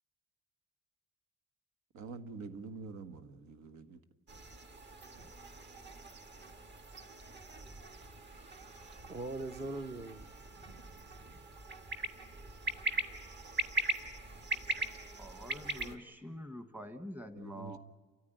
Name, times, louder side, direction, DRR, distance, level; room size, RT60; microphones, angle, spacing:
voice 1, 1.9-4.0 17.4-17.8, right 4 dB, 75° right, 10 dB, 1.6 m, -46 dB
sound 1, 4.3-16.0, right 2 dB, 40° right, 1.6 m, -41 dB
voice 2, 8.0-10.7, right 2 dB, 20° right, 10 dB, 0.6 m, -44 dB
voice 3, 15.2-17.8, equal, 5° right, 8 dB, 1.3 m, -46 dB
29.5 x 14.0 x 9.2 m, 1.3 s
cardioid pair, 175°, 29 cm